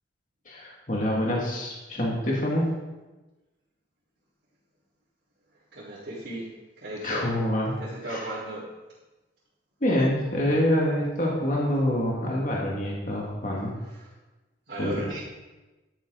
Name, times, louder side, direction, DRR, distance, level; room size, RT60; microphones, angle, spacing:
voice 1, 0.5-2.7 7.0-7.8 8.0-8.3 9.8-13.7 14.8-15.2, left 1 dB, 45° left, -3 dB, 2.2 m, -26 dB
voice 2, 5.7-6.5 6.8-7.3 7.8-8.6 14.0-14.1 14.7-15.2, right 1 dB, 75° right, -13 dB, 4.1 m, -35 dB
13.0 x 9.2 x 4.0 m, 1.1 s
head